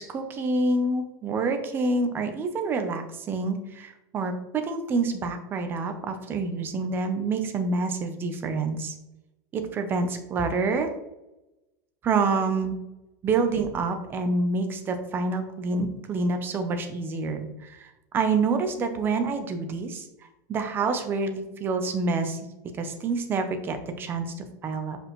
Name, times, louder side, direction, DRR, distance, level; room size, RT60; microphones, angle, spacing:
voice 1, 0.0-8.9 9.5-10.9 12.0-12.8 13.2-20.1 20.5-22.5 22.8-25.0, right 3 dB, 20° right, 7 dB, 0.7 m, -27 dB
6.4 x 5.2 x 3.1 m, 0.94 s
supercardioid pair, 160°, 10 cm